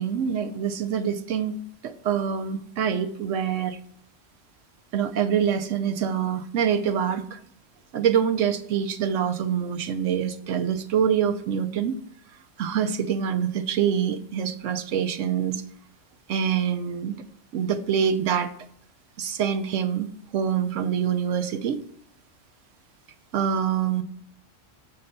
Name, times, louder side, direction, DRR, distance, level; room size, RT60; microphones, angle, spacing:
voice 1, 0.0-3.8 4.9-7.4 7.9-12.0 12.6-15.6 16.3-17.1 17.5-18.5 19.2-21.8 23.3-24.0, right 8 dB, 75° right, 8 dB, 0.9 m, -25 dB
7.6 x 4.1 x 6.4 m, 0.67 s
omnidirectional pair, 1.3 m